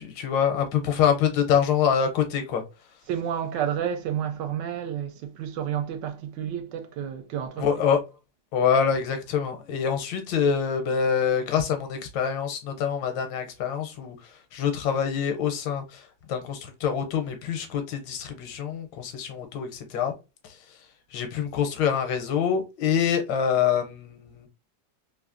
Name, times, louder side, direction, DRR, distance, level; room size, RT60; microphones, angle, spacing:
voice 1, 0.0-2.6 7.6-8.0 8.5-14.2 14.5-16.0 16.3-20.1 20.4-20.6 21.1-24.5, left 7 dB, 85° left, 1.4 m, -25 dB
voice 2, 3.1-7.7, right 9 dB, 80° right, 1.2 m, -30 dB
3.1 x 2.5 x 2.4 m
omnidirectional pair, 2.0 m